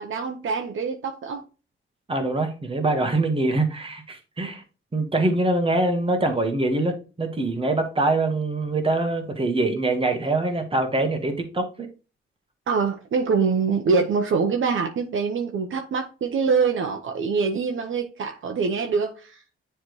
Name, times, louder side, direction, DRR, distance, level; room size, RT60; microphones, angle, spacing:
voice 1, 0.0-1.4 12.7-19.4, right 5 dB, 70° right, 0.8 m, -24 dB
voice 2, 2.1-4.6 4.9-11.9, right 2 dB, 25° right, 1.3 m, -24 dB
9.8 x 3.4 x 3.1 m
wide cardioid pair, 155°, 21 cm